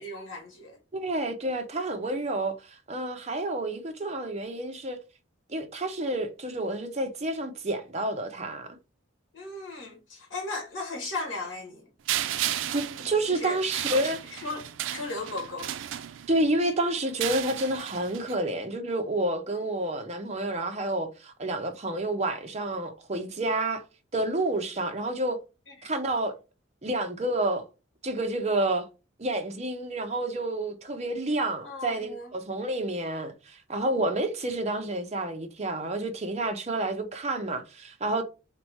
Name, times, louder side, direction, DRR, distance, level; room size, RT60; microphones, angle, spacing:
voice 1, 0.0-0.8 9.3-11.9 13.3-13.6 13.9-15.8 25.7-25.9 31.6-32.3, left 2 dB, 75° left, 1.5 m, -36 dB
voice 2, 0.9-5.0 5.5-8.7 12.7-14.2 16.3-23.8 24.1-25.4 25.8-26.4 26.8-27.6 28.0-28.9 29.2-38.2, right 2 dB, 35° right, 0.8 m, -29 dB
sound 1, 12.1-16.5 17.1-18.3, right 12 dB, 85° right, 0.4 m, -34 dB
3.6 x 2.9 x 4.6 m
head